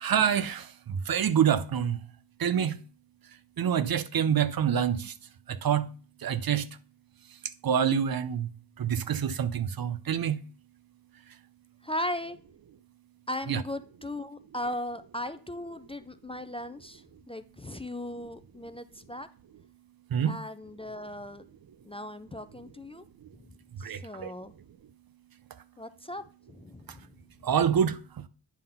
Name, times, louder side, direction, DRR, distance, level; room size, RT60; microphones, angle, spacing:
voice 1, 0.0-2.0 2.4-2.8 3.6-5.1 5.5-5.9 6.2-6.7 7.6-8.5 8.8-10.4 13.5-13.6 20.1-20.4 23.8-24.3 27.4-28.2, right 8 dB, 55° right, 0.7 m, -26 dB
voice 2, 11.8-12.4 13.3-19.3 20.2-21.5 21.8-23.1 23.8-24.5 25.8-27.1, left 1 dB, 15° left, 0.5 m, -37 dB
9.2 x 3.8 x 5.5 m
cardioid pair, 60°, 44 cm